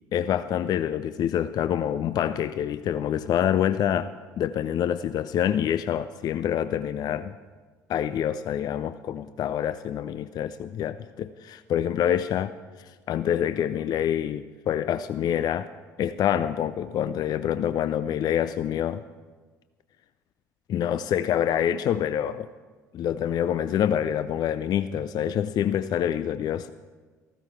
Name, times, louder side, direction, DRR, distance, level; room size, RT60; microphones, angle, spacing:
voice 1, 0.1-7.3 7.9-15.7 16.0-19.0 20.7-22.5 22.9-26.7, left 10 dB, 45° left, 13 dB, 0.4 m, -26 dB
14.5 x 14.0 x 4.6 m, 1.4 s
figure-of-eight pair, 55°, 10 cm